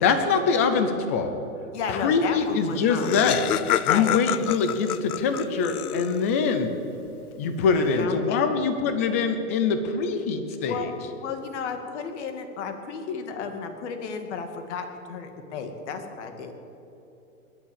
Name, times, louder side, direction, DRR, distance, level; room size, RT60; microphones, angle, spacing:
voice 1, 0.0-1.3 1.9-3.4 3.9-6.7 7.4-10.8, left 5 dB, 10° left, 8 dB, 0.3 m, -24 dB
voice 2, 1.7-3.1 3.9-4.1 7.6-8.4 10.7-10.9 11.2-16.5, left 5 dB, 50° left, 6 dB, 2.2 m, -33 dB
Laughter, 2.4-2.5 2.7-6.4, left 11 dB, 85° left, 0.7 m, -28 dB
21.0 x 7.5 x 8.7 m, 3.0 s
hypercardioid pair, 135°, 43 cm